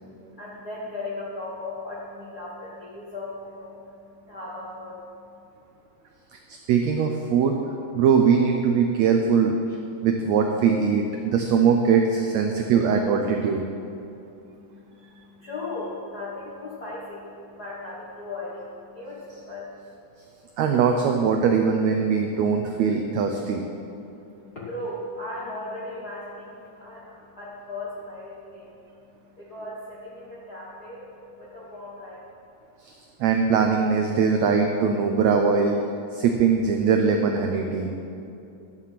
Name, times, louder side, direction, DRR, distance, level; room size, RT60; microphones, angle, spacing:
voice 1, 0.0-5.5 14.5-20.0 24.3-32.2, left 2 dB, 55° left, -7 dB, 1.0 m, -37 dB
voice 2, 6.7-7.6 7.9-9.6 10.0-13.6 20.6-23.6 32.8-32.9 33.2-35.7 36.1-37.9, right 6 dB, 90° right, 3 dB, 1.5 m, -21 dB
11.5 x 5.8 x 7.4 m, 2.8 s
omnidirectional pair, 4.0 m